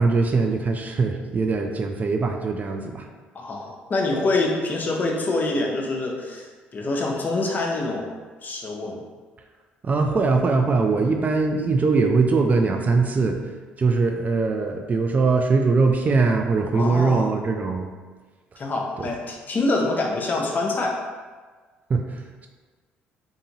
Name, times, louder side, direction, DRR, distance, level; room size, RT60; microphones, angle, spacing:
voice 1, 0.0-3.1 9.8-13.4 13.8-17.9 19.0-19.1 21.9-22.5, right 4 dB, 35° right, 4 dB, 0.3 m, -21 dB
voice 2, 3.3-8.1 8.4-9.0 16.7-17.3 18.6-21.0, left 2 dB, 40° left, 0 dB, 0.6 m, -25 dB
2.6 x 2.6 x 2.8 m, 1.4 s
hypercardioid pair, 60°, 5 cm